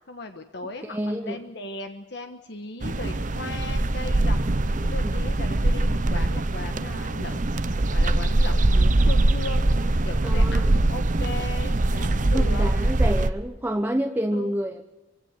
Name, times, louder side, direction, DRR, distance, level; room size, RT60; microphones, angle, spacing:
voice 1, 0.1-12.7 14.3-14.5, left 2 dB, 60° left, 6 dB, 1.3 m, -37 dB
voice 2, 0.8-1.4 5.0-5.2 10.2-10.9 12.3-14.8, equal, 10° right, 4 dB, 0.9 m, -28 dB
sound 1, 2.8-13.3, right 2 dB, 40° right, 0.8 m, -22 dB
24.5 x 16.5 x 8.2 m, 1.0 s
head